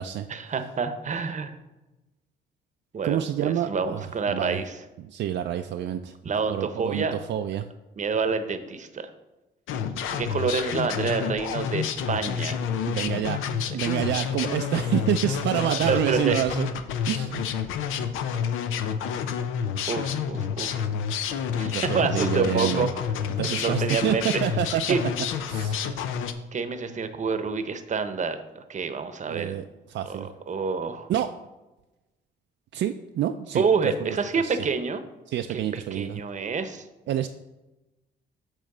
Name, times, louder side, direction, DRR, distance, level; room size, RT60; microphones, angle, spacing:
voice 1, 0.3-1.5 2.9-4.8 6.2-7.2 8.0-9.1 10.2-12.6 13.7-13.8 15.6-16.4 19.9-20.8 21.6-23.0 23.5-24.5 24.9-25.0 25.7-25.8 26.5-29.6 30.0-31.1 33.5-35.0 35.5-36.8, right 5 dB, 35° right, 9 dB, 0.8 m, -28 dB
voice 2, 3.0-4.6 5.0-6.1 6.5-7.7 12.9-13.4 13.7-16.7 17.1-17.4 21.6-22.9 23.4-24.8 25.5-25.8 29.3-29.6 29.9-30.3 31.1-31.3 32.7-33.9 34.4-34.6 35.3-36.2 37.1-37.3, right 11 dB, 65° right, 7 dB, 0.4 m, -28 dB
sound 1, 9.7-26.3, left 7 dB, 90° left, 0.6 m, -29 dB
8.7 x 3.1 x 6.6 m, 1.1 s
cardioid pair, 90°, 20 cm